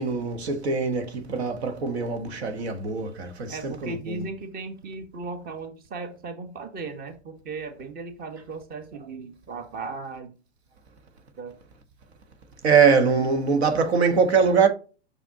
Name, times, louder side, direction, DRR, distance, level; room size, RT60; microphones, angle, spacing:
voice 1, 0.0-4.1 12.6-14.7, right 5 dB, 70° right, 1.4 m, -22 dB
voice 2, 3.5-10.3 11.4-11.5, right 3 dB, 25° right, 1.3 m, -36 dB
6.2 x 5.8 x 2.8 m
hypercardioid pair, 110°, 34 cm